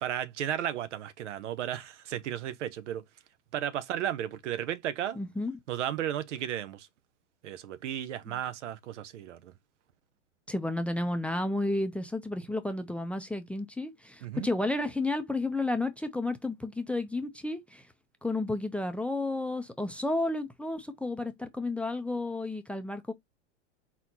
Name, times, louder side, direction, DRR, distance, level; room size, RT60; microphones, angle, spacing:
voice 1, 0.0-3.0 3.5-5.2 5.7-6.9 7.4-9.5 14.2-14.5, right 10 dB, 75° right, 0.8 m, -34 dB
voice 2, 5.2-5.6 8.3-8.4 10.5-17.9 18.2-23.1, left 2 dB, 5° left, 0.5 m, -32 dB
4.2 x 4.1 x 2.9 m
hypercardioid pair, 110°, 36 cm